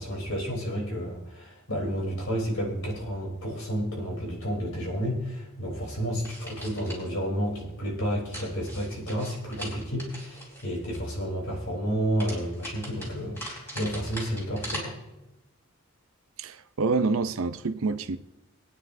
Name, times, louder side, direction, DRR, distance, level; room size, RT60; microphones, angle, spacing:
voice 1, 0.0-15.0, equal, 85° left, 3.5 m, -31 dB
sound 1, 6.2-7.1 8.3-11.0 12.2-14.8, equal, 10° left, 3.9 m, -40 dB
voice 2, 16.4-18.2, right 4 dB, 75° right, 0.6 m, -27 dB
23.0 x 9.6 x 2.6 m
head